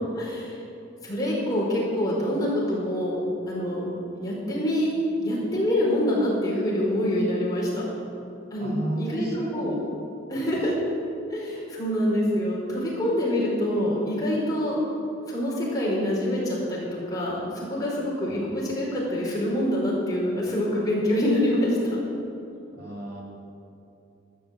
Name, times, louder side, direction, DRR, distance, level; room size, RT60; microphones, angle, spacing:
voice 1, 0.2-0.6 1.0-3.2 3.5-3.9 4.2-4.9 5.2-7.8 8.5-9.7 10.3-10.7 11.3-14.8 15.3-22.0, left 1 dB, 20° left, -6 dB, 4.8 m, -26 dB
voice 2, 8.6-9.8 10.5-10.6 18.3-18.4 22.7-23.2, right 1 dB, 50° right, -3 dB, 2.9 m, -34 dB
13.0 x 12.0 x 7.8 m, 2.7 s
head